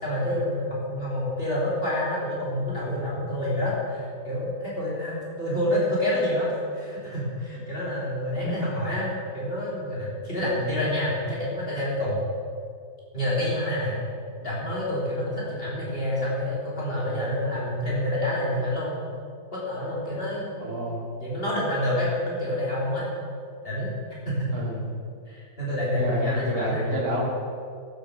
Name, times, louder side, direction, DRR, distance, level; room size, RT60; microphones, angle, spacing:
voice 1, 0.0-12.2 13.1-14.0 14.4-19.0 19.5-20.7 21.2-23.1 23.6-23.9 24.2-24.5 25.3-27.0, left 1 dB, 35° left, -6 dB, 3.7 m, -28 dB
voice 2, 20.6-21.1 24.5-24.9 25.9-27.3, right 1 dB, 60° right, -3 dB, 2.5 m, -29 dB
13.0 x 7.9 x 6.6 m, 2.2 s
omnidirectional pair, 1.8 m